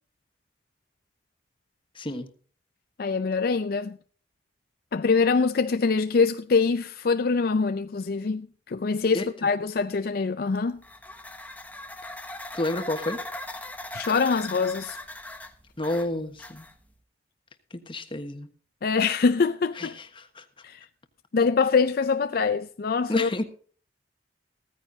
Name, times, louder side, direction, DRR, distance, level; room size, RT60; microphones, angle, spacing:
voice 1, 1.9-2.3 9.1-9.3 12.5-13.2 15.8-16.6 17.7-18.5 19.8-20.4 23.1-23.4, left 1 dB, 30° left, 1.3 m, -30 dB
voice 2, 3.0-4.0 4.9-10.8 13.9-15.0 18.8-20.0 20.6-20.9 21.3-23.3, left 4 dB, 55° left, 0.4 m, -24 dB
sound 1, 10.8-16.9, left 1 dB, 10° left, 1.1 m, -39 dB
15.5 x 14.5 x 2.7 m
head